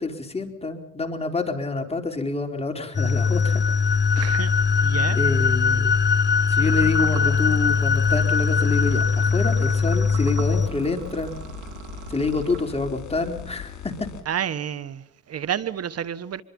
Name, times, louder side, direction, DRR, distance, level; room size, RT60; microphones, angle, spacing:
voice 1, 0.0-3.6 4.2-4.3 5.1-5.9 6.5-11.3 12.1-13.9, left 3 dB, 20° left, 4.0 m, -27 dB
sound 1, 2.9-10.7, left 5 dB, 35° left, 1.3 m, -21 dB
sound 2, 3.1-14.2, left 8 dB, 70° left, 4.5 m, -40 dB
voice 2, 4.2-4.5 4.8-5.2 14.3-16.4, right 9 dB, 55° right, 1.4 m, -29 dB
sound 3, 6.6-13.1, right 9 dB, 85° right, 2.6 m, -40 dB
24.5 x 23.0 x 5.5 m
cardioid pair, 90°, 30 cm